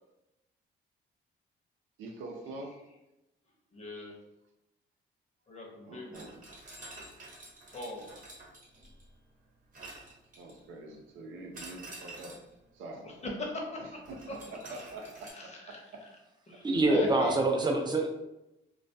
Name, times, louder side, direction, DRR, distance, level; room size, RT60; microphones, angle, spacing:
voice 1, 2.0-2.7 5.8-6.3 10.4-12.3 12.7-13.1 13.8-14.2 14.5-15.5, right 2 dB, 85° right, 2 dB, 0.5 m, -44 dB
voice 2, 3.7-4.2 5.5-6.3 7.7-8.2 13.0-13.8 14.3-14.8 15.2-16.1 16.5-17.4, left 2 dB, 35° left, 0 dB, 0.7 m, -40 dB
sound 1, 6.1-9.1 9.7-10.7 11.5-12.5 14.0-15.3, right 2 dB, 40° right, 0.9 m, -49 dB
voice 3, 16.6-18.1, right 2 dB, 20° right, 2 dB, 0.4 m, -25 dB
2.3 x 2.2 x 2.6 m, 0.93 s
cardioid pair, 90°, 20 cm